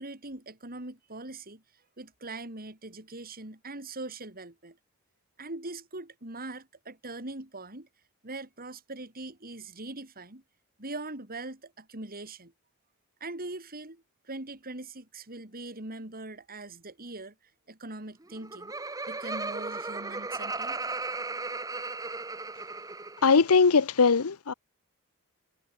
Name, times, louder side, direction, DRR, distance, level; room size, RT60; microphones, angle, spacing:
voice 1, 0.0-1.6 2.0-4.8 5.4-7.9 8.2-10.4 10.8-12.5 13.2-17.3 17.7-18.7 19.1-20.8, right 2 dB, 40° right, 6.2 m, -41 dB
Laughter, 18.2-23.4, right 3 dB, 15° right, 1.1 m, -36 dB
voice 2, 23.2-24.5, left 5 dB, 75° left, 0.8 m, -21 dB
head